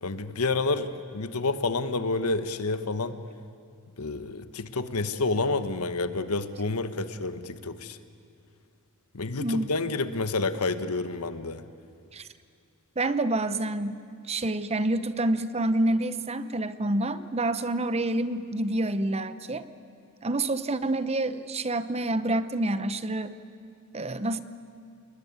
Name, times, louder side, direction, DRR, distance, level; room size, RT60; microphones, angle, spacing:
voice 1, 0.0-3.2 4.0-8.0 9.1-11.6, left 3 dB, 80° left, 11 dB, 1.3 m, -29 dB
voice 2, 13.0-14.0 14.3-19.7 20.2-23.3 23.9-24.4, right 2 dB, 30° right, 13 dB, 0.8 m, -27 dB
29.0 x 20.5 x 9.6 m, 2.3 s
head